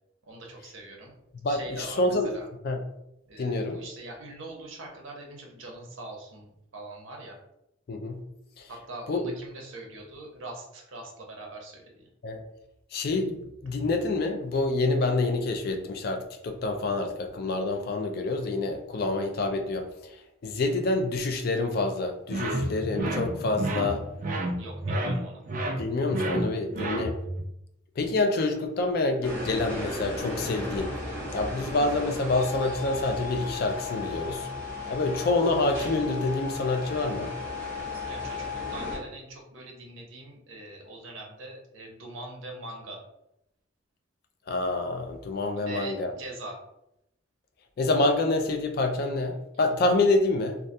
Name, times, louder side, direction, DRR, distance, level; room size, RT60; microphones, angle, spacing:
voice 1, 0.2-1.1 1.5-2.5 3.3-7.4 8.7-12.1 24.6-25.4 26.8-27.0 38.1-38.5 38.7-43.0 45.6-46.6, right 2 dB, 75° right, 0 dB, 0.7 m, -42 dB
voice 2, 1.4-2.3 2.6-2.8 3.4-3.8 7.9-8.2 8.6-8.7 9.1-9.2 12.2-12.4 12.9-24.0 25.8-27.1 28.0-30.9 31.3-34.5 34.9-37.3 44.5-46.1 47.8-50.6, left 2 dB, 50° left, 6 dB, 0.3 m, -27 dB
sound 1, 22.3-27.4, right 1 dB, 40° right, 0.3 m, -31 dB
sound 2, 29.2-39.0, left 3 dB, 5° left, 1.1 m, -35 dB
2.3 x 2.2 x 2.6 m, 0.83 s
head